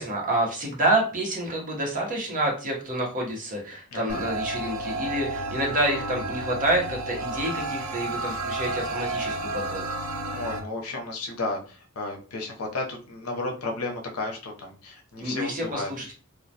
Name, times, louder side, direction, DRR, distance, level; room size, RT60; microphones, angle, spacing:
voice 1, 0.0-9.8 15.2-16.1, right 1 dB, 40° right, -1 dB, 0.8 m, -28 dB
voice 2, 3.9-4.3 10.3-15.9, left 2 dB, 90° left, 2 dB, 0.6 m, -33 dB
sound 1, 4.1-10.6, right 2 dB, 75° right, 0.4 m, -31 dB
2.2 x 2.1 x 2.7 m, 0.37 s
head